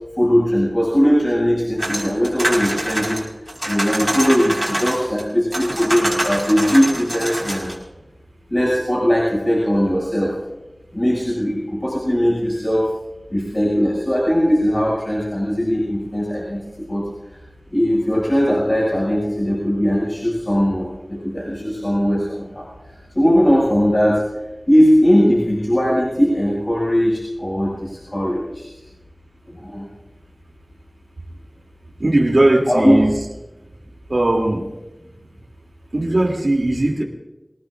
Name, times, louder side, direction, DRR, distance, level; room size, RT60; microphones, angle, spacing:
voice 1, 0.2-3.3 3.6-7.8 8.5-10.3 10.9-12.9 13.3-17.1 17.7-22.6 23.1-24.2 24.7-28.7 29.5-29.9 32.7-33.0, equal, 35° left, -6 dB, 7.2 m, -19 dB
sound 1, 1.8-5.2 5.5-7.8, right 1 dB, 20° right, 5.3 m, -25 dB
voice 2, 32.0-33.1 34.1-34.7 35.9-37.0, right 1 dB, 85° right, 1 dB, 3.1 m, -18 dB
26.5 x 18.5 x 2.7 m, 1.0 s
wide cardioid pair, 45°, 0 cm